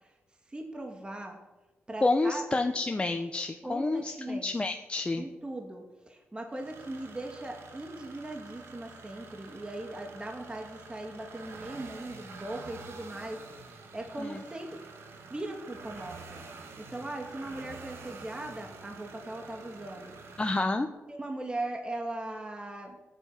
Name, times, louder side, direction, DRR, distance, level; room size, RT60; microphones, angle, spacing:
voice 1, 0.5-1.4 1.9-2.4 3.6-4.5 5.2-14.8 15.3-16.4 16.8-20.4 21.1-23.0, right 1 dB, 20° right, 3 dB, 2.5 m, -39 dB
voice 2, 2.0-5.2 14.2-14.4 20.4-20.9, left 2 dB, 25° left, 5 dB, 1.1 m, -29 dB
sound 1, 6.5-20.6, right 4 dB, 85° right, 2.8 m, -48 dB
16.0 x 9.4 x 9.4 m, 1.2 s
cardioid pair, 80°, 4 cm